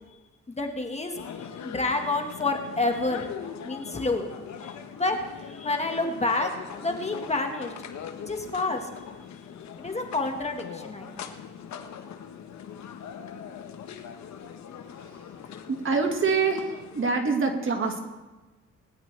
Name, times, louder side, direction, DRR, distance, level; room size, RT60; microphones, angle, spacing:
voice 1, 0.5-3.3 3.6-4.3 4.6-6.5 6.8-7.7 8.3-8.9 9.8-11.3, left 2 dB, 20° left, 3 dB, 1.7 m, -29 dB
sound 1, 1.1-17.1, left 7 dB, 65° left, 1.2 m, -41 dB
voice 2, 15.7-18.0, right 4 dB, 45° right, 4 dB, 1.9 m, -25 dB
20.5 x 10.5 x 3.4 m, 1.2 s
cardioid pair, 90°, 30 cm